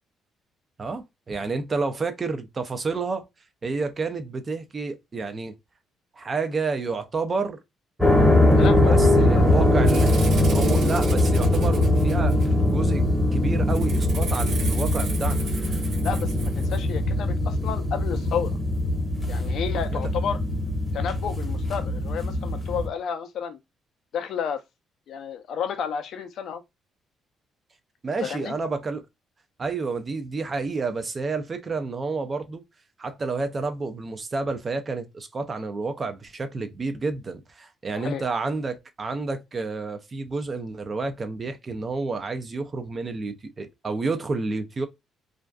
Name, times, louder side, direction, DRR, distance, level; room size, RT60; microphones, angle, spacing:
voice 1, 0.8-3.3 3.6-5.5 6.2-7.6 8.6-10.2 10.5-12.4 12.7-13.1 13.3-15.4 19.9-20.0 28.0-29.0 29.6-32.6 33.0-44.9, right 3 dB, 30° right, 0.4 m, -30 dB
sound 1, 8.0-22.9, left 1 dB, ahead, 0.8 m, -21 dB
voice 2, 8.6-9.6 16.0-18.6 19.3-20.4 20.9-23.6 24.1-24.6 25.1-26.6 28.2-28.5 37.9-38.2, left 7 dB, 65° left, 0.4 m, -31 dB
Rattle (instrument), 9.8-12.7 13.7-16.9, right 4 dB, 60° right, 0.8 m, -38 dB
2.5 x 2.2 x 2.2 m
cardioid pair, 120°, 0 cm